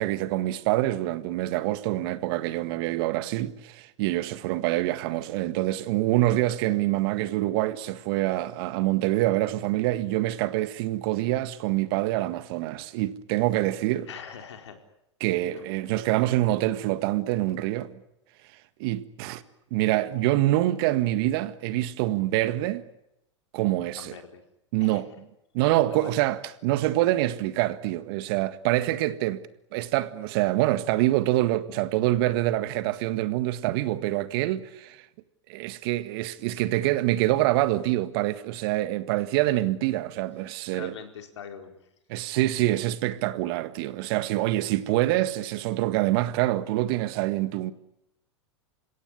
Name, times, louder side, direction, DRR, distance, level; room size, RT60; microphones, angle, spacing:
voice 1, 0.0-14.1 15.2-17.9 18.8-19.4 19.7-22.8 23.5-24.2 24.7-25.1 25.5-29.4 29.7-35.0 35.5-40.9 42.1-47.7, right 16 dB, 55° right, 1.7 m, -26 dB
voice 2, 14.1-14.8 15.5-15.6 24.0-24.4 24.8-25.0 25.9-26.2 40.7-41.7, left 7 dB, 70° left, 4.4 m, -42 dB
30.0 x 17.0 x 10.0 m
hypercardioid pair, 95°, 15 cm